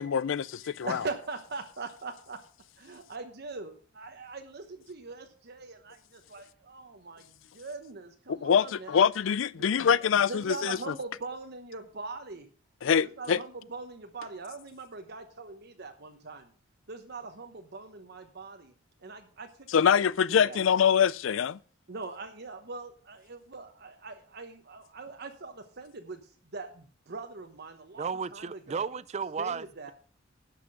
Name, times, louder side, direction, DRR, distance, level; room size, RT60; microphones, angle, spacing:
voice 1, 0.0-1.0 8.3-10.9 12.8-13.4 19.7-21.6, left 7 dB, 75° left, 0.4 m, -24 dB
voice 2, 0.6-2.4 2.8-9.1 9.6-12.5 13.0-16.5 16.9-18.7 19.0-19.7 19.9-20.6 21.9-28.9 29.4-29.9, right 3 dB, 55° right, 1.0 m, -42 dB
voice 3, 28.0-29.7, right 5 dB, 35° right, 0.4 m, -33 dB
11.5 x 6.0 x 6.4 m
head